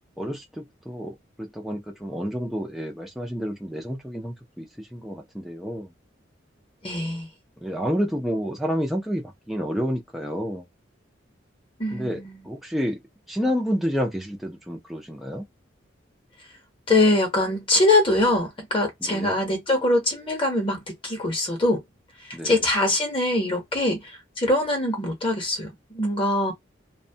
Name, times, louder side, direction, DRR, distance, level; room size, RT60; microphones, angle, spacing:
voice 1, 0.2-5.9 7.6-10.7 11.9-13.0 13.3-15.4 19.0-19.4 22.3-22.6, equal, ahead, 0.4 m, -29 dB
voice 2, 6.8-7.3 11.8-12.5 16.9-21.8 22.3-26.5, left 2 dB, 30° left, 0.8 m, -23 dB
2.5 x 2.1 x 2.7 m
head